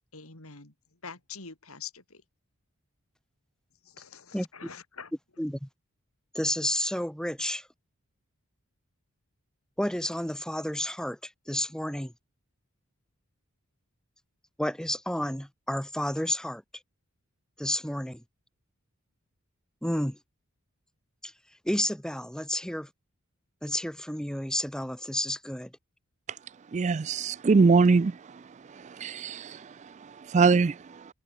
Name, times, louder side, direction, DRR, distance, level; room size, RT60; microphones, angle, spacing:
voice 1, 0.1-0.7 1.0-2.2 3.8-5.1, left 6 dB, 80° left, 4.1 m, -45 dB
voice 2, 5.4-5.7 6.3-7.7 9.8-12.1 14.6-16.6 17.6-18.2 19.8-20.2 21.2-21.3 21.6-22.9 23.6-25.7, left 1 dB, 5° left, 1.6 m, -31 dB
voice 3, 26.7-28.1 29.0-29.6 30.3-30.7, right 4 dB, 35° right, 0.4 m, -21 dB
head